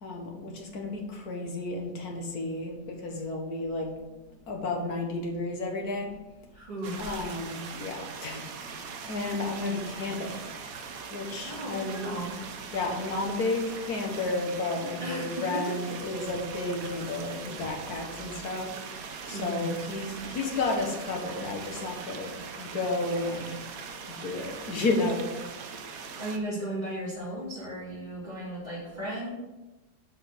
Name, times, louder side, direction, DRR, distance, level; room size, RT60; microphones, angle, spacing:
voice 1, 0.0-3.9 4.5-6.2 7.0-8.8 9.1-10.4 11.1-12.1 12.7-23.5 24.1-25.3, left 2 dB, 60° left, 2 dB, 2.0 m, -32 dB
voice 2, 6.5-7.2 11.4-12.4 15.0-15.6 19.3-19.7 26.2-29.3, right 1 dB, 25° right, -12 dB, 3.3 m, -35 dB
sound 1, 6.8-26.4, right 5 dB, 60° right, 1.2 m, -41 dB
7.1 x 5.6 x 6.7 m, 1.1 s
omnidirectional pair, 1.8 m